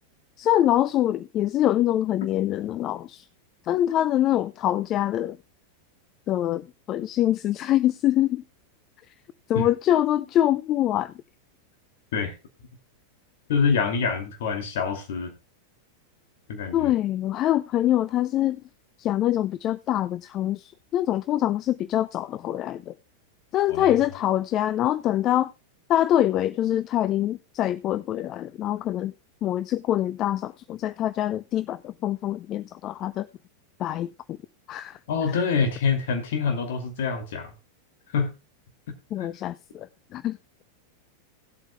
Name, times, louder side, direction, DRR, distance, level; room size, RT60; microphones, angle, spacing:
voice 1, 0.4-3.3 3.7-5.4 6.3-8.4 9.5-11.1 16.7-18.6 19.0-22.9 23.5-25.5 25.9-29.1 29.4-33.3 33.8-34.4 34.7-35.0 39.1-39.9 40.1-40.4, left 12 dB, 35° left, 0.4 m, -24 dB
voice 2, 13.5-15.3 16.5-16.9 23.7-24.0 35.1-37.5 38.1-38.3 39.2-39.3, left 5 dB, 55° left, 2.5 m, -26 dB
18.5 x 8.1 x 2.2 m
figure-of-eight pair, 90°, 0 cm